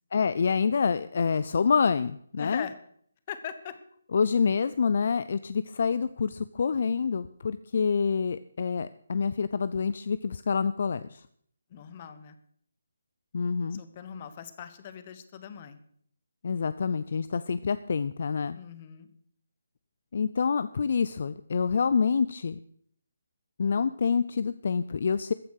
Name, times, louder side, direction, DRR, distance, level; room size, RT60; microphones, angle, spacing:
voice 1, 0.1-2.7 4.1-11.2 13.3-13.8 16.4-18.6 20.1-22.6 23.6-25.3, left 5 dB, 50° left, 15 dB, 0.5 m, -27 dB
voice 2, 2.4-2.7 3.3-3.8 11.7-12.4 13.7-15.8 18.5-19.1, left 8 dB, 25° left, 11 dB, 1.2 m, -41 dB
14.5 x 9.2 x 6.5 m, 0.63 s
hypercardioid pair, 170°, 0 cm